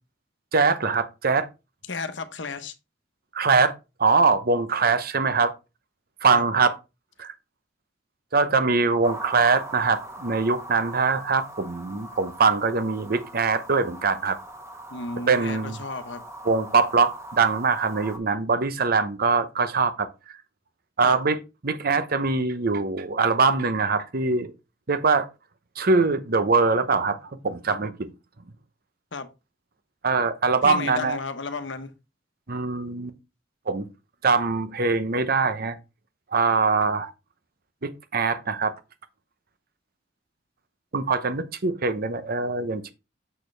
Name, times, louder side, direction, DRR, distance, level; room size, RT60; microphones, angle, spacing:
voice 1, 0.5-1.5 3.3-3.7 4.0-5.5 6.2-6.7 7.2-7.3 8.3-14.4 15.3-15.8 16.4-20.4 21.0-24.5 24.9-25.3 25.8-28.1 30.0-31.2 32.5-33.1 33.7-33.9 34.2-35.8 36.3-37.1 37.8-38.7 40.9-42.9, right 4 dB, 55° right, 0.8 m, -23 dB
voice 2, 1.9-2.7 6.3-6.5 14.9-16.2 21.0-21.2 29.1-29.3 30.6-31.9, left 4 dB, 75° left, 1.0 m, -33 dB
sound 1, 9.0-18.2, right 1 dB, 15° right, 1.2 m, -41 dB
6.8 x 6.5 x 3.3 m
head